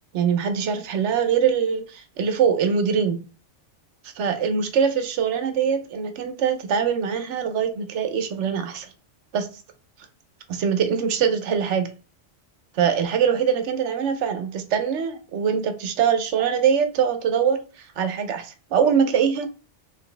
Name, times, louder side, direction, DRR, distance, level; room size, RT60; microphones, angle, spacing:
voice 1, 0.1-3.2 4.2-8.9 9.3-9.5 10.5-11.9 12.7-17.6 18.0-19.5, right 7 dB, 75° right, 1.0 m, -23 dB
4.0 x 3.2 x 3.3 m
omnidirectional pair, 1.2 m